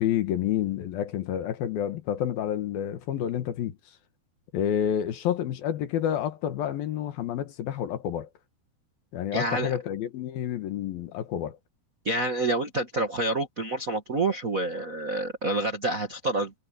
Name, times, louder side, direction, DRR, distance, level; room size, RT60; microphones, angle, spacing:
voice 1, 0.0-3.8 4.5-8.3 9.1-11.6, left 10 dB, 65° left, 3.1 m, -29 dB
voice 2, 9.3-9.7 12.0-16.5, right 2 dB, 65° right, 0.8 m, -28 dB
omnidirectional pair, 4.7 m